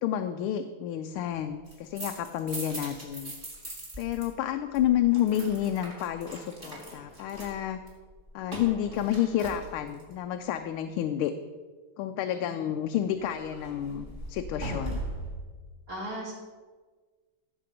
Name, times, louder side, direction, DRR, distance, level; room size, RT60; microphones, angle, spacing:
voice 1, 0.0-3.3 4.0-7.8 8.3-11.3 12.0-15.0, left 11 dB, 90° left, 7 dB, 1.5 m, -30 dB
sound 1, 1.5-4.3 4.5-10.1 13.2-15.4, right 1 dB, 25° right, 2.6 m, -40 dB
voice 2, 12.3-12.7 15.9-16.3, right 1 dB, 55° right, -4 dB, 4.5 m, -38 dB
15.5 x 6.9 x 5.1 m, 1.4 s
omnidirectional pair, 2.3 m